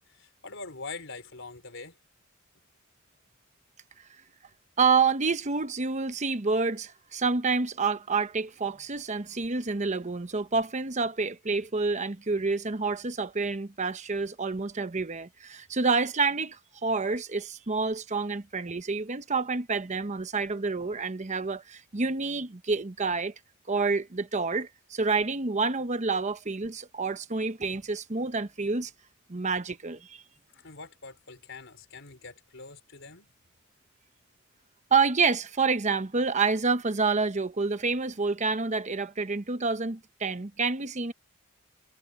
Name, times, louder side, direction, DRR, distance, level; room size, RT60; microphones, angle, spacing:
voice 1, 0.0-2.0 30.5-33.3, left 4 dB, 65° left, 4.6 m, -44 dB
voice 2, 4.8-23.3 23.7-28.9 29.3-30.2 34.9-41.1, right 4 dB, 35° right, 0.9 m, -28 dB
head